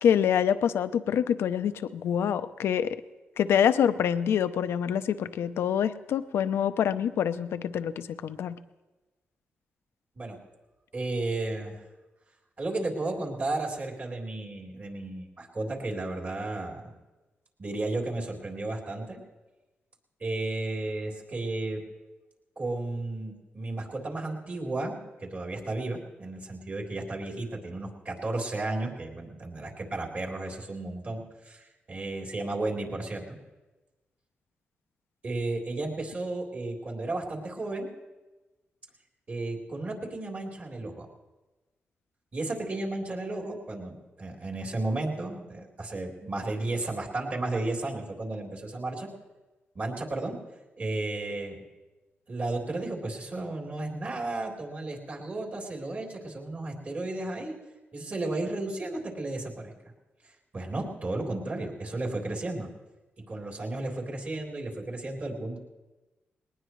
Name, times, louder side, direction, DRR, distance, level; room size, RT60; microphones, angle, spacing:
voice 1, 0.0-3.0 3.4-8.6, left 8 dB, 90° left, 12 dB, 0.6 m, -26 dB
voice 2, 10.9-11.8 12.6-16.9 17.6-19.2 20.2-21.8 22.6-33.4 35.2-37.9 39.3-41.1 42.3-49.1 49.7-50.4 50.8-51.6 52.3-57.5 57.9-59.7 60.5-62.7 63.3-65.6, right 2 dB, 45° right, -1 dB, 3.7 m, -33 dB
20.0 x 19.5 x 3.2 m, 1.2 s
cardioid pair, 80°, 4 cm